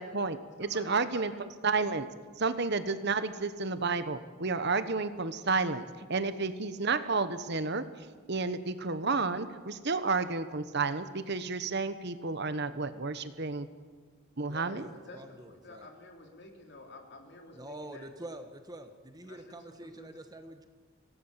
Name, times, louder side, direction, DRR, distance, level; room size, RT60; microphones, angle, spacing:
voice 1, 0.0-2.1 2.4-13.7 14.4-14.9, right 4 dB, 50° right, 11 dB, 1.1 m, -31 dB
voice 2, 0.6-1.5 14.5-18.1 19.2-20.1, left 2 dB, 50° left, 2 dB, 3.4 m, -51 dB
voice 3, 14.5-15.9 17.5-20.7, right 1 dB, 20° right, 7 dB, 1.3 m, -46 dB
25.5 x 17.5 x 7.5 m, 1.4 s
head